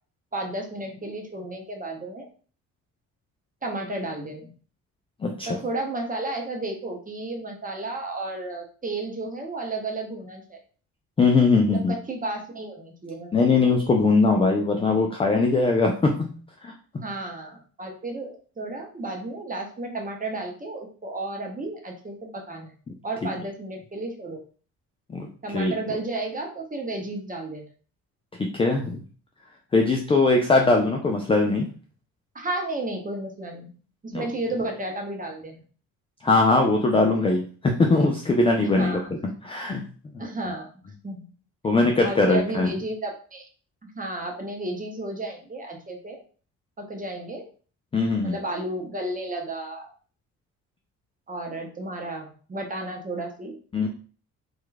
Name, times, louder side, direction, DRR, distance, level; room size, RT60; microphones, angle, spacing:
voice 1, 0.3-2.3 3.6-4.5 5.5-10.6 11.7-13.6 17.0-22.7 23.0-24.4 25.4-27.7 32.3-33.7 34.0-35.6 38.6-39.1 40.2-41.3 42.0-43.5 43.8-46.2 46.8-47.5 48.2-49.9 51.3-53.5, right 2 dB, 20° right, 2 dB, 0.8 m, -33 dB
voice 2, 5.2-5.6 11.2-11.9 13.3-16.7 25.1-25.3 25.5-25.7 28.4-29.0 29.7-31.7 34.1-34.3 36.2-40.1 41.6-42.7 47.9-48.4 53.7-53.9, left 3 dB, 15° left, 2 dB, 0.3 m, -21 dB
3.0 x 2.2 x 2.2 m, 0.41 s
hypercardioid pair, 45°, 43 cm